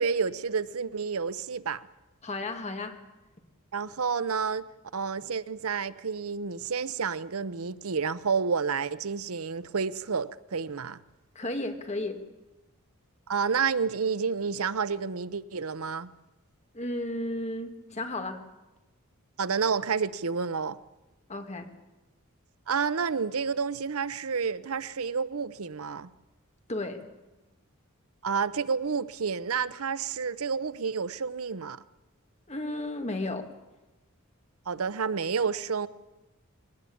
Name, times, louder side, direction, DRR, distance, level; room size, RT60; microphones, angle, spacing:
voice 1, 0.0-1.8 3.7-4.7 4.9-11.0 13.3-16.1 19.4-20.8 22.7-26.1 28.2-31.8 34.7-35.9, right 5 dB, 75° right, 0.7 m, -30 dB
voice 2, 2.2-3.0 11.4-12.2 16.7-18.4 21.3-21.7 26.7-27.0 32.5-33.5, left 2 dB, 30° left, 2.0 m, -33 dB
21.0 x 18.5 x 8.6 m
head